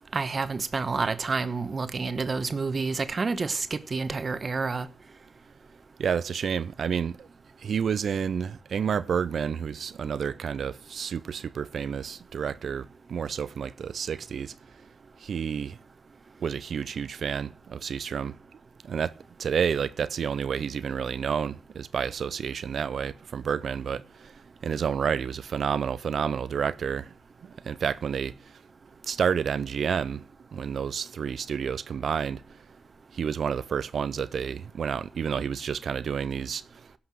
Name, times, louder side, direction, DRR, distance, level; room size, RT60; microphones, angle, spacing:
voice 1, 0.1-4.9, right 4 dB, 50° right, 1.0 m, -29 dB
voice 2, 6.0-7.3 7.6-14.5 15.2-15.8 16.4-18.4 18.8-19.1 19.4-24.3 24.6-27.1 27.6-28.3 29.0-30.2 30.5-32.4 33.1-36.6, right 7 dB, 70° right, 0.5 m, -30 dB
16.0 x 5.8 x 6.2 m
supercardioid pair, 50°, 0 cm